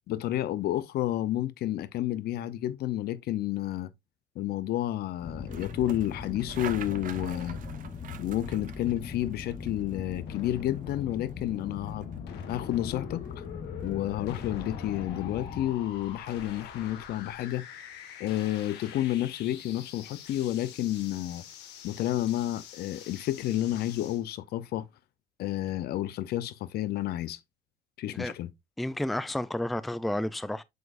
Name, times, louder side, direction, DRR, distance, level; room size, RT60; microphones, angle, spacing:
voice 1, 0.1-3.9 4.4-7.6 8.2-12.1 12.5-13.2 13.8-17.6 18.2-21.4 21.8-24.9 25.4-27.4 28.0-28.5, left 13 dB, 70° left, 0.7 m, -30 dB
sound 1, 5.2-15.7, left 5 dB, 35° left, 0.9 m, -40 dB
sound 2, 5.2-17.4, right 8 dB, 50° right, 0.9 m, -49 dB
sound 3, 10.3-24.2, left 9 dB, 85° left, 1.5 m, -46 dB
voice 2, 28.8-30.6, left 1 dB, ahead, 0.4 m, -31 dB
7.9 x 5.1 x 2.5 m
cardioid pair, 110°, 17 cm